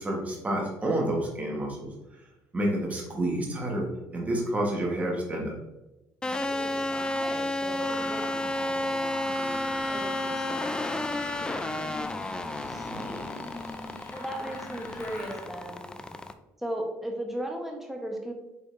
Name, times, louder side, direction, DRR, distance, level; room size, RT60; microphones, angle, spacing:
voice 1, 0.0-1.9 2.5-5.5 12.9-13.0, right 1 dB, 25° right, -2 dB, 1.3 m, -29 dB
Mechanisms, 6.2-6.4 6.9-7.3 7.7-15.5, left 1 dB, 35° left, 1.1 m, -41 dB
sound 1, 6.2-16.3, left 1 dB, 15° left, 0.3 m, -32 dB
voice 2, 6.2-13.3 14.1-15.9 16.6-18.3, right 1 dB, 5° right, 1 dB, 1.0 m, -38 dB
5.2 x 3.9 x 2.6 m, 0.98 s
cardioid pair, 95°, 6 cm